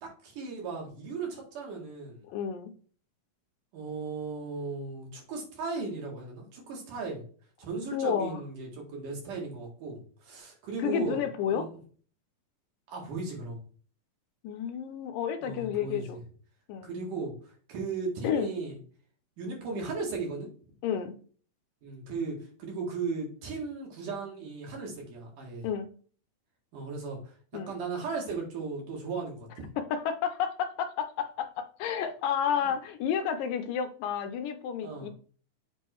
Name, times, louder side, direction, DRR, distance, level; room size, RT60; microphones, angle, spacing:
voice 1, 0.0-2.3 3.7-7.2 7.6-11.8 12.9-13.6 15.4-16.2 16.8-17.3 17.7-18.8 19.4-20.5 21.8-25.7 26.7-29.7 32.6-32.7 34.8-35.1, right 4 dB, 70° right, -1 dB, 3.3 m, -36 dB
voice 2, 2.3-2.7 7.9-8.4 10.8-11.7 14.4-16.2 16.7-16.9 18.2-18.5 20.8-21.2 25.6-25.9 27.5-27.8 29.8-35.1, left 8 dB, 85° left, 8 dB, 2.3 m, -31 dB
7.5 x 3.7 x 4.5 m, 0.43 s
omnidirectional pair, 4.0 m